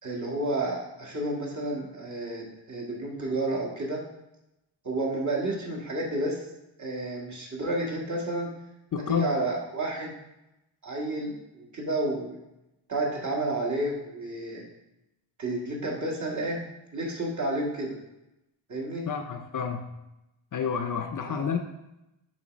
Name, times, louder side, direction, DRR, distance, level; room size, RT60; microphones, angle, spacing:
voice 1, 0.0-4.0 4.8-6.4 6.8-8.5 9.1-10.1 10.8-12.4 12.9-14.6 15.4-18.0 18.7-19.1, right 2 dB, 40° right, -2 dB, 1.6 m, -31 dB
voice 2, 8.9-9.3 19.1-19.9 20.5-21.6, left 7 dB, 45° left, 5 dB, 0.5 m, -29 dB
7.1 x 3.4 x 5.0 m, 0.90 s
wide cardioid pair, 140°, 45 cm